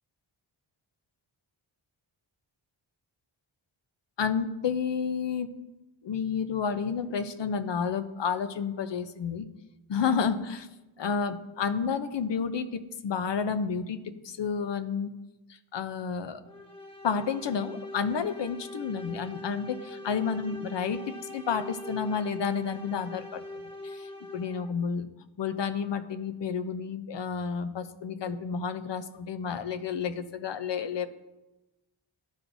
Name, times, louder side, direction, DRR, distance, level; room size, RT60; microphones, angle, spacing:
voice 1, 4.2-5.5 6.0-9.5 9.9-10.7 11.0-15.1 15.7-16.4 17.0-23.4 23.8-24.0 24.3-25.1 25.4-31.1, left 6 dB, 60° left, 10 dB, 0.6 m, -30 dB
sound 1, 16.4-24.8, left 1 dB, 10° left, 1.2 m, -42 dB
12.0 x 4.6 x 2.6 m, 1.0 s
wide cardioid pair, 75°, 49 cm